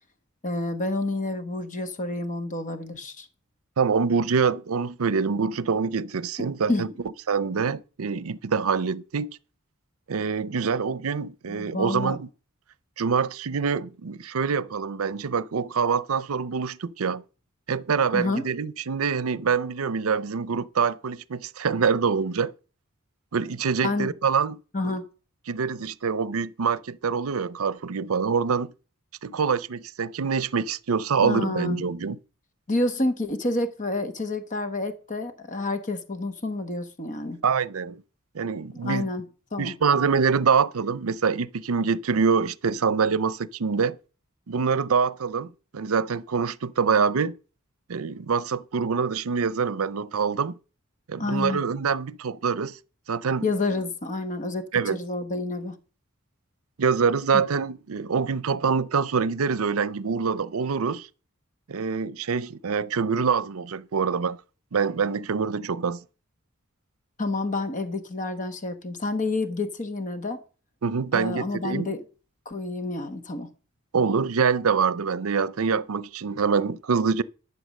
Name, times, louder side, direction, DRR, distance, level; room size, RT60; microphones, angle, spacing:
voice 1, 0.4-3.3 6.7-6.9 11.5-12.2 18.1-18.5 23.8-24.1 24.7-25.0 31.2-31.8 32.7-37.4 38.7-39.3 39.5-39.8 51.2-51.6 53.4-55.8 57.3-57.4 67.2-70.4 71.1-72.0 72.4-73.5, left 2 dB, 35° left, 1.1 m, -29 dB
voice 2, 3.8-6.9 7.3-9.4 10.1-12.3 13.0-17.2 17.7-22.5 23.3-24.6 25.5-28.7 29.2-32.2 37.4-38.0 38.3-39.1 39.6-44.0 44.5-47.3 47.9-50.5 51.1-52.8 53.1-53.5 54.7-55.0 56.8-61.1 61.7-64.4 64.7-66.0 70.8-71.9 73.9-77.2, right 5 dB, 75° right, 0.6 m, -25 dB
11.5 x 7.0 x 6.4 m
head